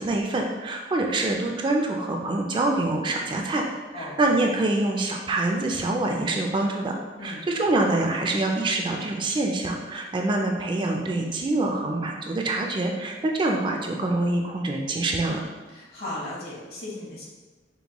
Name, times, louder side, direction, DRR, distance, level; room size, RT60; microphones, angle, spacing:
voice 1, 0.0-3.6 3.9-7.0 7.2-15.4, right 2 dB, 25° right, 1 dB, 0.3 m, -25 dB
voice 2, 15.7-17.2, left 1 dB, 60° left, -5 dB, 1.3 m, -36 dB
5.2 x 2.2 x 2.9 m, 1.2 s
head